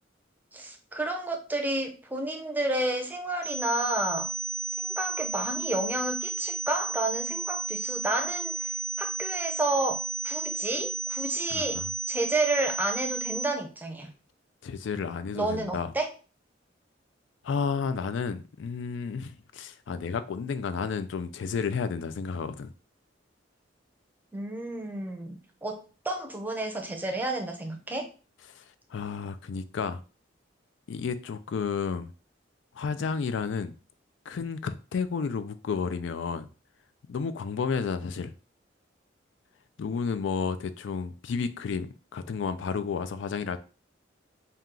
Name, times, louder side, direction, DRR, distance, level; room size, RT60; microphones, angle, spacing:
voice 1, 0.5-4.3 4.8-8.7 9.0-14.1 15.3-16.1 24.3-28.1, right 2 dB, 10° right, 0.6 m, -31 dB
sound 1, 3.4-13.4, right 3 dB, 45° left, 1.3 m, -33 dB
voice 2, 11.5-11.9 14.6-15.9 17.4-22.7 28.6-28.7 28.9-30.0 30.9-32.1 32.8-33.7 34.3-36.5 37.1-38.3 39.8-43.6, left 5 dB, 75° left, 0.4 m, -31 dB
4.2 x 2.3 x 3.7 m
head